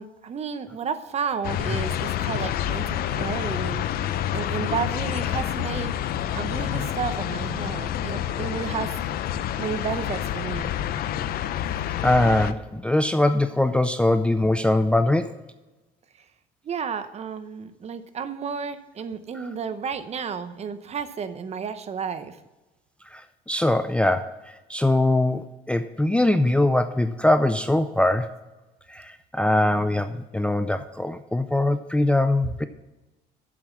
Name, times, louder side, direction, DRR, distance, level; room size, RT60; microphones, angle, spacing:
voice 1, 0.0-9.3 9.6-10.7 16.1-16.3 16.6-22.4, right 6 dB, 40° right, 12 dB, 0.8 m, -32 dB
sound 1, 1.4-12.5, left 11 dB, 60° left, 0.6 m, -28 dB
voice 2, 12.0-15.4 19.3-19.4 23.1-28.4 28.9-32.7, left 1 dB, 5° left, 10 dB, 0.4 m, -22 dB
7.7 x 7.1 x 7.0 m, 1.1 s
cardioid pair, 105°, 17 cm